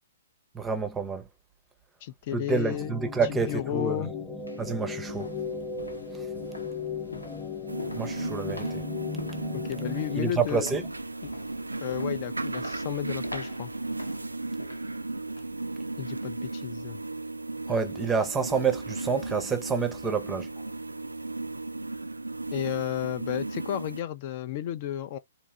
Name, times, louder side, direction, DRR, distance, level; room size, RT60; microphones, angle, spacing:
voice 1, 0.5-1.2 2.3-4.0 4.6-5.3 8.0-8.8 10.2-10.8 17.7-20.5, right 5 dB, 10° right, 0.6 m, -28 dB
voice 2, 2.0-3.0 3.3-4.1 9.5-10.7 11.8-13.7 16.0-17.0 22.5-25.2, left 11 dB, 45° left, 0.4 m, -32 dB
sound 1, 2.7-10.2, left 5 dB, 10° left, 0.9 m, -37 dB
sound 2, 3.7-3.8 4.3-15.6 15.9-16.2 16.6-16.7, left 1 dB, 90° left, 1.0 m, -45 dB
sound 3, 7.7-24.0, right 2 dB, 85° right, 0.3 m, -35 dB
3.9 x 2.7 x 2.3 m
figure-of-eight pair, 115°, 0 cm